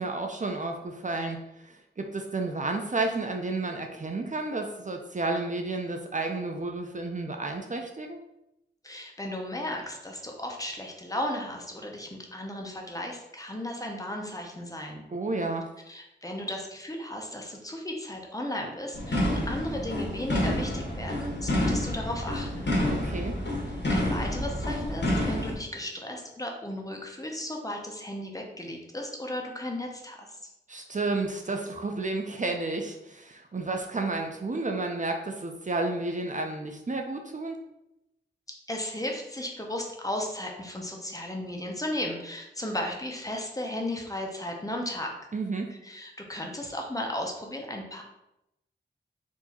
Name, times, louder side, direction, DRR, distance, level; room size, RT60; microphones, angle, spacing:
voice 1, 0.0-8.2 15.1-15.7 22.9-23.4 30.7-37.6 45.3-45.7, right 3 dB, 40° right, 3 dB, 0.5 m, -31 dB
voice 2, 8.8-15.1 15.9-22.7 23.9-30.4 38.7-45.1 45.8-48.0, left 1 dB, 20° left, 1 dB, 0.9 m, -35 dB
sound 1, 18.9-25.5, left 1 dB, 70° left, 1.2 m, -28 dB
4.5 x 2.8 x 4.2 m, 0.87 s
wide cardioid pair, 70°, 19 cm